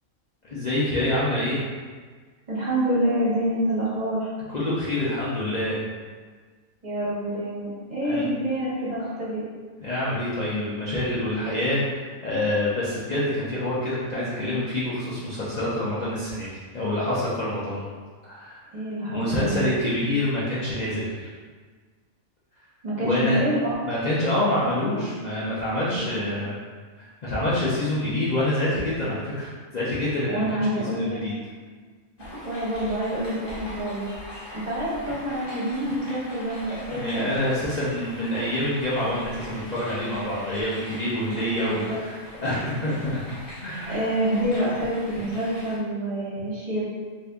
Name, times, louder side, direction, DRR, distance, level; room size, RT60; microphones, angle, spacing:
voice 1, 0.4-1.6 4.5-5.8 8.0-8.2 9.0-9.1 9.8-17.8 18.3-18.6 19.1-21.3 23.0-23.4 23.8-26.6 27.0-30.5 30.9-31.4 36.9-43.4 43.6-44.1, left 1 dB, 70° left, -9 dB, 0.4 m, -26 dB
voice 2, 2.5-4.3 6.8-9.4 18.7-19.7 22.8-23.7 25.9-26.3 30.3-31.2 32.2-34.0 34.5-37.3 41.4-42.0 43.9-46.8, right 1 dB, 40° right, -8 dB, 0.8 m, -27 dB
sound 1, 32.2-45.8, left 1 dB, 45° left, 0.9 m, -41 dB
2.6 x 2.6 x 3.4 m, 1.5 s
omnidirectional pair, 1.5 m